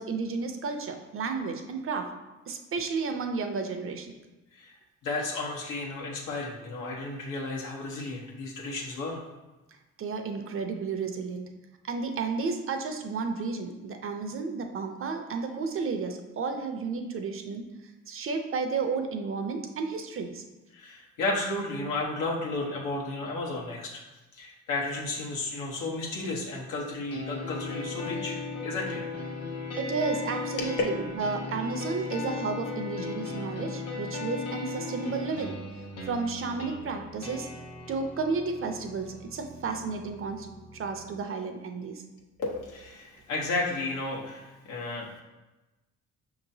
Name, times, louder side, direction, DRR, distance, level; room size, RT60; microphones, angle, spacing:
voice 1, 0.0-2.1 2.5-4.1 10.0-11.5 11.9-17.6 18.1-20.4 29.8-35.6 36.0-37.5 37.9-40.5 40.7-42.0, right 4 dB, 45° right, 5 dB, 0.6 m, -32 dB
voice 2, 5.0-9.2 20.7-24.0 24.3-29.0 42.4-45.2, left 2 dB, 90° left, -3 dB, 1.1 m, -33 dB
sound 1, 27.1-41.1, left 4 dB, 55° left, 1.0 m, -37 dB
5.7 x 2.9 x 2.7 m, 1.1 s
cardioid pair, 90°, 30 cm